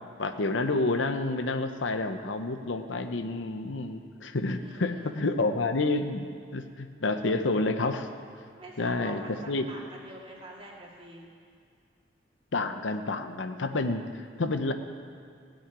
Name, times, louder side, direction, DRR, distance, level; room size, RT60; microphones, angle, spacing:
voice 1, 0.2-8.1 8.8-9.7 12.5-14.7, left 2 dB, 90° left, 8 dB, 0.8 m, -29 dB
voice 2, 4.6-5.1 8.5-11.2, right 1 dB, 30° right, -3 dB, 2.4 m, -45 dB
17.0 x 6.4 x 9.7 m, 2.3 s
head